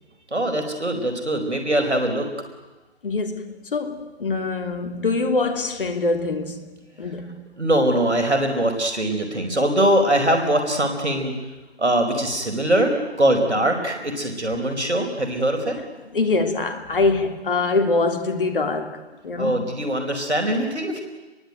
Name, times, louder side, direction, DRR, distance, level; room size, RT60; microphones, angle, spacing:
voice 1, 0.3-2.3 7.6-11.3 11.8-15.8 19.4-21.0, right 1 dB, 85° right, 4.8 m, -22 dB
voice 2, 3.0-7.4 15.8-15.9 16.1-19.6, left 3 dB, 55° left, 3.0 m, -24 dB
27.0 x 23.0 x 9.3 m
figure-of-eight pair, 150°, 33 cm